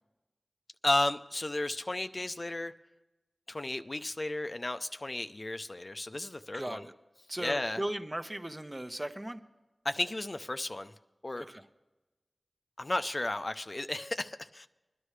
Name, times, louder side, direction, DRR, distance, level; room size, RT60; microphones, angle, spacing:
voice 1, 0.8-2.7 3.5-6.9 7.4-7.8 9.8-10.9 11.2-11.4 12.8-14.7, left 2 dB, 45° left, 10 dB, 0.5 m, -33 dB
voice 2, 6.5-6.9 7.3-9.4 11.4-11.6, right 1 dB, 25° right, 8 dB, 0.9 m, -37 dB
21.5 x 11.0 x 3.3 m, 1.1 s
wide cardioid pair, 45°, 0 cm